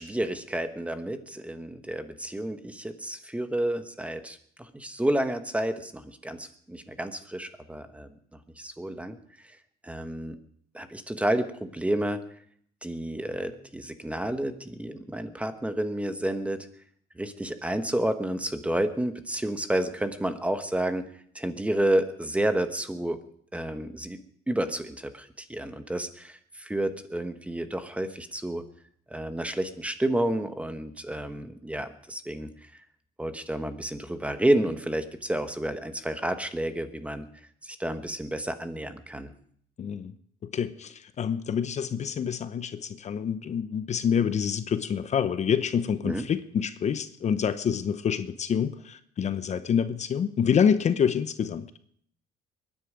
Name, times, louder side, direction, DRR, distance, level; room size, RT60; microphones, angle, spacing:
voice 1, 0.0-8.1 8.6-9.2 9.8-10.4 10.7-12.3 12.8-16.7 17.2-21.1 21.3-23.2 23.5-24.2 24.5-28.6 29.1-32.8 33.2-37.3 37.6-39.3 46.0-46.2, right 1 dB, 5° right, 10 dB, 1.3 m, -30 dB
voice 2, 39.8-40.1 40.4-51.7, left 7 dB, 40° left, 12 dB, 0.8 m, -27 dB
22.5 x 10.0 x 5.1 m, 0.63 s
cardioid pair, 110°, 17 cm